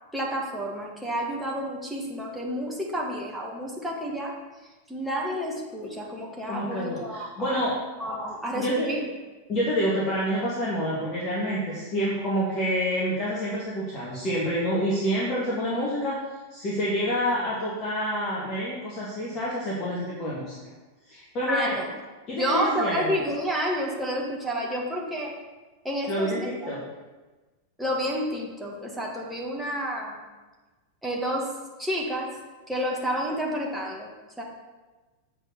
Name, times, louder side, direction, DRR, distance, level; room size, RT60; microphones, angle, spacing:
voice 1, 0.1-4.3 4.6-7.7 8.0-9.0 21.5-21.9 22.3-25.4 25.8-26.7 27.8-30.2 31.0-32.4 32.7-34.1 34.4-34.5, equal, 5° right, -3 dB, 1.6 m, -30 dB
voice 2, 6.5-7.8 8.5-8.9 9.5-16.2 16.5-20.6 21.1-21.7 22.3-23.2 26.1-26.8, equal, 30° left, -6 dB, 1.8 m, -28 dB
7.6 x 4.5 x 6.6 m, 1.2 s
figure-of-eight pair, 90°, 0 cm